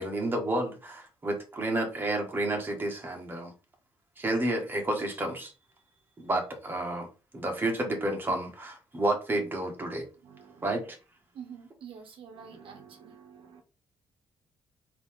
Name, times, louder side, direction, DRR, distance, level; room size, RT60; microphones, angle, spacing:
voice 1, 0.0-3.5 4.2-5.5 6.2-7.1 7.3-10.1 10.6-11.0, right 1 dB, 20° right, 1.5 m, -30 dB
voice 2, 10.2-10.8 11.3-13.6, right 7 dB, 65° right, 0.9 m, -48 dB
4.0 x 2.9 x 3.6 m
cardioid pair, 115°, 10 cm